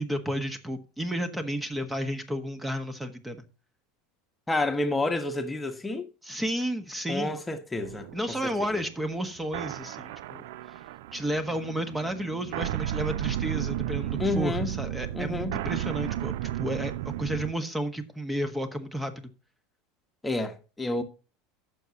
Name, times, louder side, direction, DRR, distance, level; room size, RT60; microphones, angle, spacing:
voice 1, 0.0-3.4 6.2-7.4 8.1-10.8 11.1-19.3, equal, 10° right, 1.4 m, -32 dB
voice 2, 4.5-6.1 7.1-8.8 14.2-14.7 15.1-15.6 20.2-21.0, left 2 dB, 15° left, 1.3 m, -30 dB
sound 1, 7.8-17.5, right 13 dB, 65° right, 0.4 m, -33 dB
15.0 x 6.4 x 2.9 m
hypercardioid pair, 80°, 0 cm